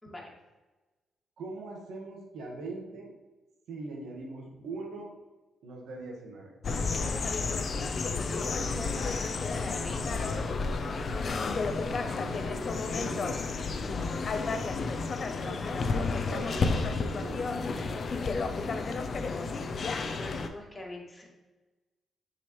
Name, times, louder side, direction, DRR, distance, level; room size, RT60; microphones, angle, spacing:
voice 1, 1.4-3.1 3.7-5.1 5.6-6.5 12.1-13.3 15.4-18.2, right 2 dB, 80° right, 0 dB, 1.5 m, -42 dB
sound 1, 6.6-20.5, left 4 dB, 55° left, 0.6 m, -31 dB
voice 2, 8.3-9.2 9.6-10.4 20.0-21.3, left 1 dB, 20° left, -3 dB, 2.0 m, -43 dB
6.8 x 4.9 x 3.1 m, 1.2 s
cardioid pair, 70°, 0 cm